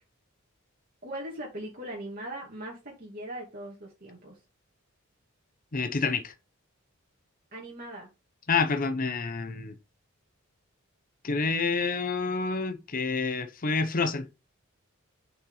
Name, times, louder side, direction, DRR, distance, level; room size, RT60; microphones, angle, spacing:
voice 1, 1.0-4.4 7.5-8.1, right 1 dB, 45° right, 2.4 m, -40 dB
voice 2, 5.7-6.3 8.5-9.7 11.2-14.3, left 4 dB, 40° left, 0.8 m, -28 dB
6.0 x 5.9 x 3.9 m
head